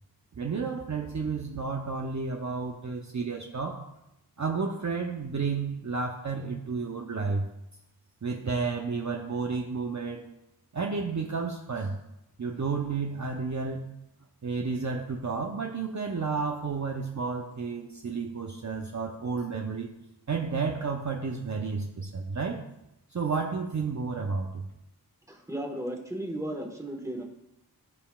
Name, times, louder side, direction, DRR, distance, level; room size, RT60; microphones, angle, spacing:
voice 1, 0.4-3.8 4.4-7.5 8.2-10.3 10.7-12.0 12.4-13.9 14.4-19.9 20.3-22.6 23.1-24.7, right 4 dB, 45° right, 1 dB, 0.7 m, -31 dB
voice 2, 25.3-27.2, right 1 dB, 10° right, 2 dB, 1.4 m, -35 dB
16.0 x 5.6 x 2.4 m, 0.87 s
wide cardioid pair, 75°, 39 cm